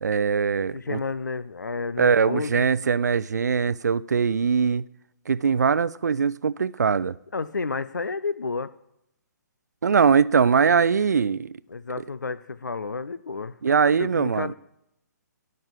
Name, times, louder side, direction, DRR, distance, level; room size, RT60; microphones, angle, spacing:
voice 1, 0.0-1.0 2.0-4.8 5.3-7.1 9.8-11.5 13.6-14.5, right 6 dB, 65° right, 0.6 m, -21 dB
voice 2, 0.7-2.7 7.3-8.7 11.7-13.6 14.0-14.5, left 4 dB, 75° left, 0.6 m, -31 dB
18.0 x 6.6 x 8.7 m
figure-of-eight pair, 130°, 10 cm